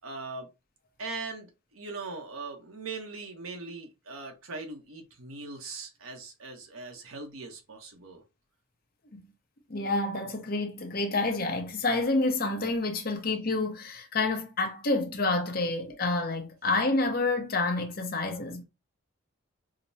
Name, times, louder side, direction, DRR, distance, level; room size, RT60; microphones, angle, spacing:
voice 1, 0.0-0.5 1.0-8.2, right 3 dB, 85° right, 0.9 m, -40 dB
voice 2, 9.7-18.6, left 2 dB, 45° left, 0.8 m, -28 dB
5.0 x 2.1 x 2.7 m
head